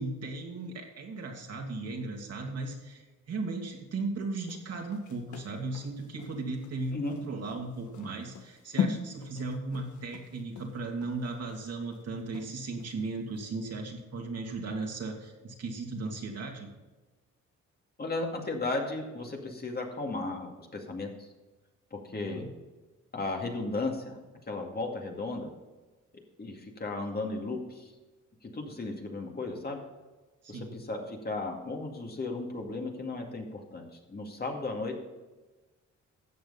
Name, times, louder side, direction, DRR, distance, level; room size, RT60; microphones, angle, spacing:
voice 1, 0.0-16.7 22.3-22.5 30.4-30.8, right 3 dB, 55° right, 1 dB, 2.6 m, -36 dB
sound 1, 4.4-13.0 13.3-13.5, left 7 dB, 75° left, 1.5 m, -38 dB
voice 2, 18.0-21.3 21.9-22.5 23.1-24.2 24.5-25.5 26.4-27.9 28.4-29.8 30.5-35.0, left 3 dB, 30° left, 1 dB, 2.3 m, -35 dB
13.5 x 7.8 x 4.1 m, 1.2 s
cardioid pair, 90°, 30 cm